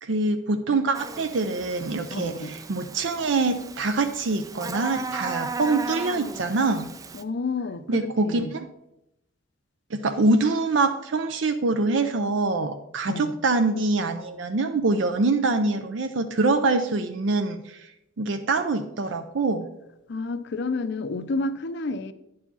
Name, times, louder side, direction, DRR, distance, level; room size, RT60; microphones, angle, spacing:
voice 1, 0.0-6.9 7.9-8.7 9.9-17.9 18.2-19.7, right 3 dB, 70° right, 8 dB, 0.5 m, -24 dB
Buzz, 0.9-7.2, right 3 dB, 20° right, 0.3 m, -36 dB
voice 2, 2.1-2.5 7.1-8.5 13.1-13.3 20.1-22.1, left 3 dB, 60° left, 11 dB, 0.5 m, -30 dB
10.0 x 4.8 x 5.5 m, 0.86 s
head